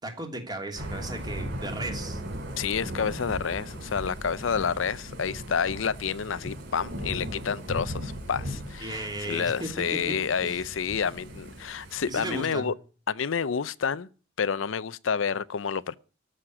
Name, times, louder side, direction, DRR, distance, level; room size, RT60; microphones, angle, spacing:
voice 1, 0.0-2.2 8.8-9.7 10.1-10.6 12.1-12.7, right 1 dB, 20° right, 2.9 m, -35 dB
Thunder / Rain, 0.7-12.4, equal, 60° right, 3.8 m, -38 dB
voice 2, 2.6-12.7 13.1-14.1 14.4-16.0, left 6 dB, 80° left, 0.6 m, -29 dB
13.5 x 6.5 x 9.6 m
head